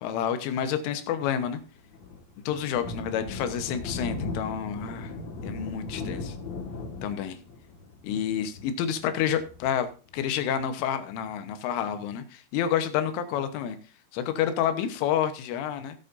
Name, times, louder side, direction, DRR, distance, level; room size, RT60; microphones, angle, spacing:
voice 1, 0.0-1.6 2.5-5.1 5.4-6.4 7.0-7.4 8.0-13.8 14.1-16.0, left 9 dB, 90° left, 9 dB, 3.6 m, -29 dB
Thunder, 1.5-10.6, left 3 dB, 55° left, 2.1 m, -38 dB
19.5 x 8.0 x 2.6 m, 0.36 s
omnidirectional pair, 5.5 m